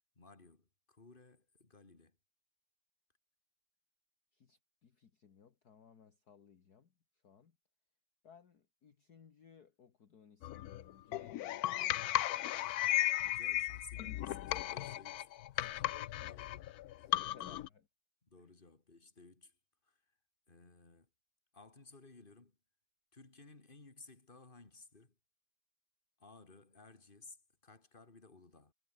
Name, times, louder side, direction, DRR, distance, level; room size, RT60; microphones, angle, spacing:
voice 1, 0.1-2.2 12.3-12.8 13.2-15.9 16.3-17.6 18.2-19.6 19.8-20.2 20.5-21.1 21.5-22.6 23.1-25.2 26.2-28.7, left 3 dB, 25° left, 3.0 m, -58 dB
voice 2, 4.3-6.9 7.2-7.6 8.2-11.7 15.6-16.4 17.1-17.8 18.4-18.5, left 7 dB, 50° left, 2.1 m, -61 dB
sound 1, 10.4-17.7, left 14 dB, 85° left, 0.8 m, -35 dB
omnidirectional pair, 2.3 m